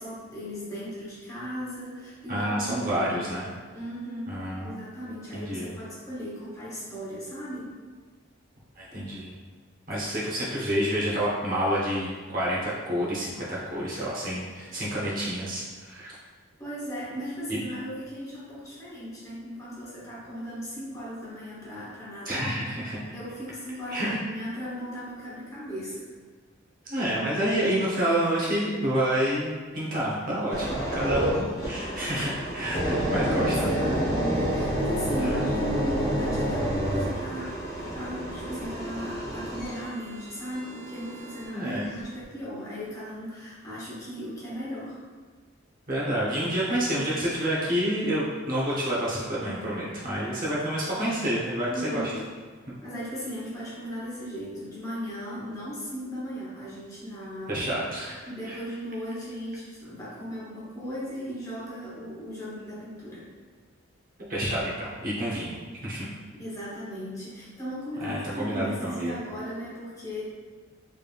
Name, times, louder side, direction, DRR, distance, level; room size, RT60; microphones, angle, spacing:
voice 1, 0.0-3.3 3.7-7.7 16.6-22.6 23.1-26.1 33.1-45.0 51.7-52.3 52.8-57.8 58.2-63.3 66.4-70.2, equal, 15° left, -9 dB, 1.0 m, -37 dB
voice 2, 2.3-3.5 4.3-4.8 5.3-5.7 8.8-9.4 9.9-16.1 17.5-17.6 22.2-23.0 23.9-24.2 26.9-33.8 35.2-35.4 41.5-41.9 45.9-52.0 52.7-52.8 57.5-58.2 58.4-58.6 64.3-66.0 68.0-69.1, equal, 45° right, -6 dB, 0.9 m, -28 dB
sound 1, 30.5-41.5 42.0-42.2, equal, 50° left, 1.4 m, -29 dB
3.5 x 3.3 x 2.4 m, 1.5 s
head